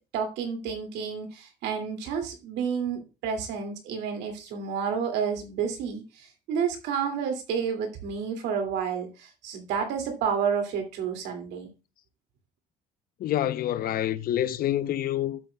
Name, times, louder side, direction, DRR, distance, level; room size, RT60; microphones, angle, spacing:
voice 1, 0.1-11.7, right 6 dB, 85° right, 2.4 m, -30 dB
voice 2, 13.2-15.4, left 12 dB, 60° left, 0.7 m, -27 dB
12.5 x 7.9 x 2.2 m
cardioid pair, 110°, 17 cm